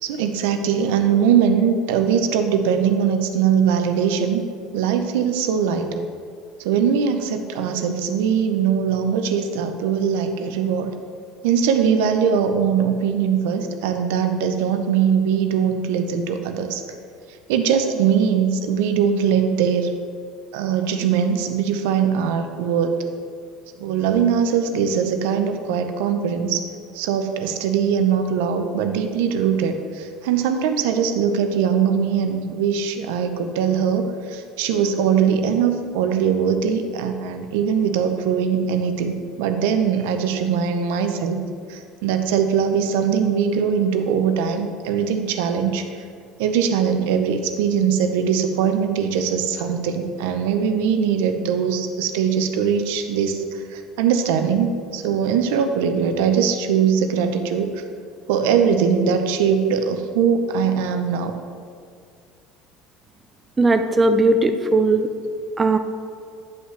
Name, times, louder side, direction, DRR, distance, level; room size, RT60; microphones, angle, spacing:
voice 1, 0.0-4.4 4.7-6.0 6.6-10.9 11.4-16.8 17.5-19.9 20.5-23.0 23.8-26.6 26.9-41.4 41.7-45.9 46.4-57.7 58.3-61.3, right 7 dB, 85° right, 7 dB, 0.6 m, -21 dB
voice 2, 63.6-65.1 65.6-65.8, right 2 dB, 15° right, 7 dB, 0.3 m, -17 dB
9.3 x 5.6 x 3.2 m, 2.2 s
cardioid pair, 150°, 0 cm